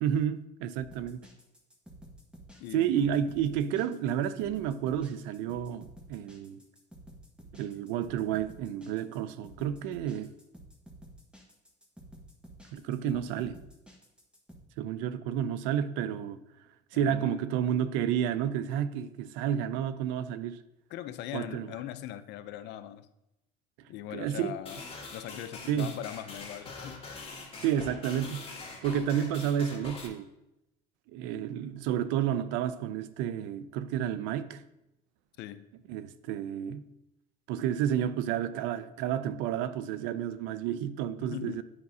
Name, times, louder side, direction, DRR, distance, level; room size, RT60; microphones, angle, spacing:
voice 1, 0.0-1.2 2.7-6.6 7.5-10.3 12.7-13.6 14.8-16.4 16.9-20.6 21.3-21.7 24.1-24.5 25.7-25.9 27.6-28.6 28.8-30.3 31.1-34.6 35.9-36.8 37.5-41.6, right 9 dB, 85° right, 0.5 m, -31 dB
sound 1, 0.8-14.6, right 1 dB, 5° right, 1.4 m, -52 dB
voice 2, 2.6-3.2 13.0-13.3 16.9-17.6 20.9-23.1 23.9-24.8 25.1-27.6 35.4-35.7 41.2-41.6, left 12 dB, 70° left, 0.5 m, -41 dB
sound 2, 24.6-30.1, left 3 dB, 30° left, 1.8 m, -44 dB
9.6 x 5.1 x 2.7 m
supercardioid pair, 95°, 19 cm